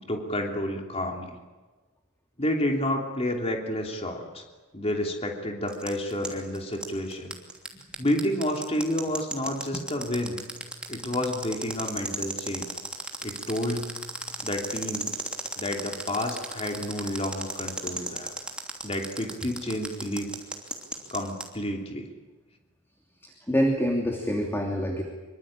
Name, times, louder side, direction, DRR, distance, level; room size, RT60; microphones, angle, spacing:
voice 1, 0.0-1.4 2.4-4.4 4.7-7.3 8.0-10.4 10.9-12.7 13.2-14.0 14.4-15.1 15.6-18.3 18.8-20.3 21.1-22.1, left 1 dB, 30° left, 2 dB, 3.1 m, -30 dB
sound 1, 5.7-21.5, right 1 dB, 5° right, 3.0 m, -34 dB
voice 2, 23.2-25.0, equal, 10° left, 1 dB, 2.9 m, -26 dB
25.0 x 24.0 x 8.9 m, 1.3 s
head